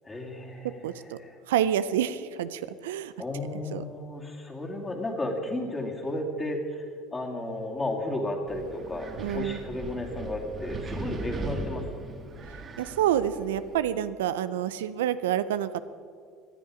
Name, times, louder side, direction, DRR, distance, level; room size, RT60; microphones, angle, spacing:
voice 1, 0.0-1.3 3.2-6.8 7.1-11.9, left 1 dB, 20° left, 1 dB, 2.6 m, -33 dB
voice 2, 0.8-1.2 1.5-3.1 3.7-3.8 9.2-9.6 12.8-15.8, right 10 dB, 85° right, 13 dB, 0.5 m, -28 dB
Wind, 8.5-13.7, right 3 dB, 35° right, 1.5 m, -38 dB
18.5 x 10.5 x 5.0 m, 2.2 s
supercardioid pair, 90°, 0 cm